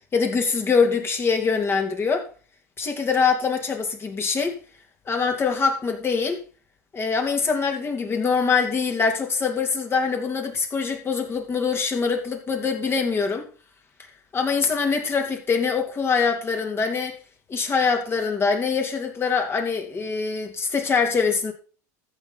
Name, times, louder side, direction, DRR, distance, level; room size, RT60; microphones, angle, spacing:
voice 1, 0.1-2.3 2.8-4.6 5.1-6.4 6.9-13.5 14.3-17.2 17.5-21.5, left 5 dB, 25° left, 2.8 m, -23 dB
14.0 x 6.4 x 4.0 m
hypercardioid pair, 100°, 9 cm